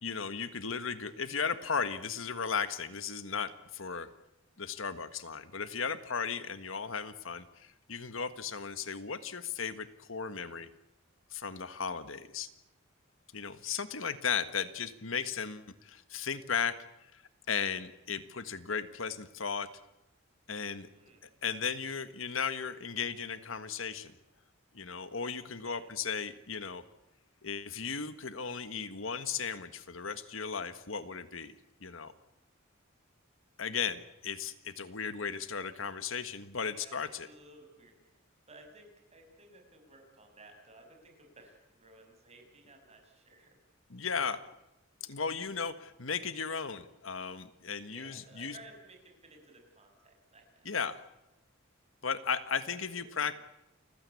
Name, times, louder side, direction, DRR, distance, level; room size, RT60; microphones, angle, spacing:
voice 1, 0.0-4.1 4.6-10.7 11.3-12.5 13.3-16.7 17.0-17.2 17.5-19.7 20.5-20.9 21.2-24.1 24.7-26.8 27.4-31.6 31.8-32.1 33.6-37.3 43.9-44.4 45.0-48.6 50.6-51.0 52.0-53.3, left 6 dB, 70° left, 12 dB, 1.6 m, -36 dB
voice 2, 20.9-21.3 25.4-25.9 36.7-43.6 47.8-50.7 52.6-53.3, right 2 dB, 35° right, 3 dB, 6.6 m, -57 dB
29.5 x 16.0 x 8.5 m, 0.90 s
head